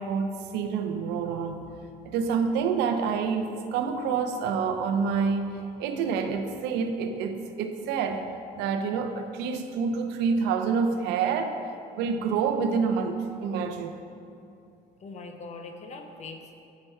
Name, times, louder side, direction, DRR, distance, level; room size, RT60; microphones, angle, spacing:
voice 1, 0.0-1.6 2.0-8.3 8.5-11.6 12.0-13.9, right 5 dB, 90° right, 7 dB, 0.5 m, -27 dB
voice 2, 15.0-16.5, left 3 dB, 40° left, 4 dB, 0.7 m, -41 dB
7.5 x 4.6 x 4.5 m, 2.5 s
cardioid pair, 110°, 17 cm